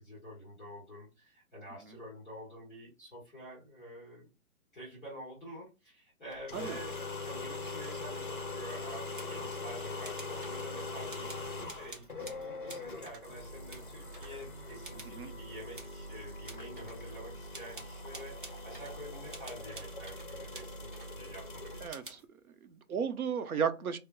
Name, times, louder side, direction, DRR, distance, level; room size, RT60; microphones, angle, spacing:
voice 1, 0.0-4.3 4.7-6.9 7.2-22.0, equal, 10° left, 1.2 m, -48 dB
sound 1, 6.3-21.9, left 3 dB, 40° left, 0.4 m, -42 dB
sound 2, 8.8-9.5 10.0-10.6 11.1-13.3 13.7-14.4 14.8-15.2 15.7-16.0 16.4-17.0 17.5-19.0 19.3-21.1 21.9-22.3, right 2 dB, 35° right, 0.7 m, -50 dB
voice 2, 21.8-22.2 22.6-24.0, right 7 dB, 75° right, 0.8 m, -34 dB
4.3 x 2.1 x 2.3 m
hypercardioid pair, 180°, 43 cm